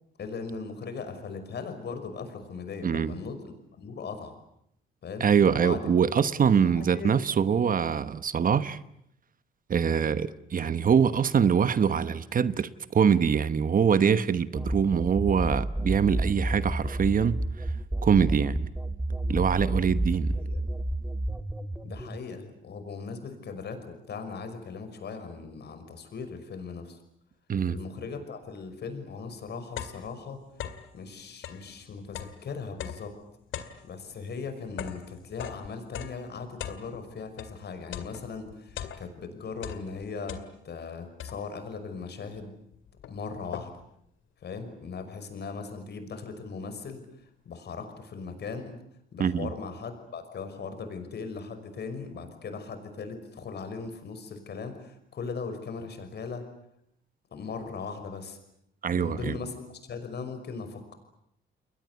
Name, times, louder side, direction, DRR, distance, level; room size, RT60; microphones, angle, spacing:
voice 1, 0.2-3.4 3.7-4.3 5.0-5.3 5.6-7.2 10.9-11.0 20.4-20.6 21.8-27.0 27.7-30.4 30.9-33.2 33.8-40.4 40.6-42.5 43.1-43.7 44.4-47.1 47.5-48.8 49.1-56.4 57.3-58.4 58.9-59.5 59.9-60.9, left 5 dB, 55° left, 5.7 m, -39 dB
voice 2, 2.8-3.2 5.2-8.8 9.7-17.4 18.0-18.7 19.3-20.4 27.5-27.8 49.2-49.5 58.8-59.4, right 7 dB, 45° right, 1.1 m, -24 dB
sound 1, 14.6-22.2, right 1 dB, 5° right, 1.4 m, -30 dB
sound 2, 29.8-31.0 31.3-37.6 37.9-39.3 39.6-40.8 41.2-41.7 42.3-42.4 42.7-44.0, left 9 dB, 80° left, 2.3 m, -41 dB
30.0 x 21.5 x 8.4 m
cardioid pair, 90°, 20 cm